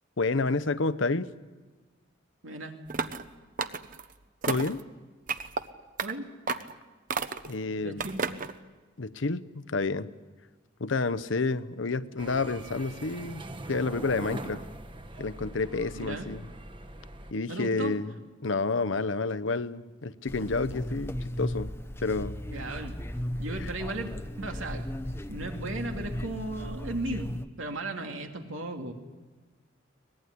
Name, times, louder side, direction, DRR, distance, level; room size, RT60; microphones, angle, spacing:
voice 1, 0.2-1.3 4.4-4.8 7.4-8.0 9.0-10.1 10.8-14.6 15.2-16.4 17.3-18.1 18.4-21.7 22.0-22.4 23.6-23.7, left 3 dB, 75° left, 12 dB, 0.8 m, -29 dB
voice 2, 2.4-2.8 6.0-6.3 7.8-8.3 15.9-16.3 17.5-17.9 22.5-23.0 23.4-24.1 24.4-24.9 25.3-28.9, right 2 dB, 90° right, 4 dB, 2.7 m, -36 dB
sound 1, 2.9-3.3 3.6-4.0 4.4-4.8 5.3-5.6 6.0-6.1 6.5-6.7 7.1-7.5 8.0-8.5, right 5 dB, 45° right, 0.9 m, -32 dB
sound 2, 12.2-17.3, right 1 dB, 25° right, 1.2 m, -42 dB
sound 3, 20.3-27.4, equal, 10° left, 0.7 m, -36 dB
23.5 x 20.0 x 9.9 m, 1.3 s
head